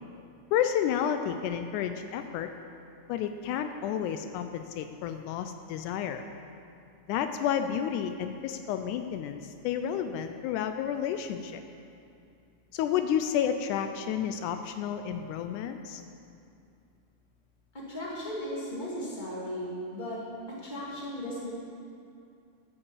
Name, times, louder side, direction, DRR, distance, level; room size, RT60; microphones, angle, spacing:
voice 1, 0.5-2.5 3.1-6.2 7.1-11.6 12.7-16.0, left 9 dB, 85° left, 8 dB, 2.0 m, -31 dB
voice 2, 17.9-20.2 20.5-21.7, equal, 15° left, -6 dB, 2.2 m, -36 dB
11.5 x 7.1 x 7.1 m, 2.5 s
omnidirectional pair, 3.5 m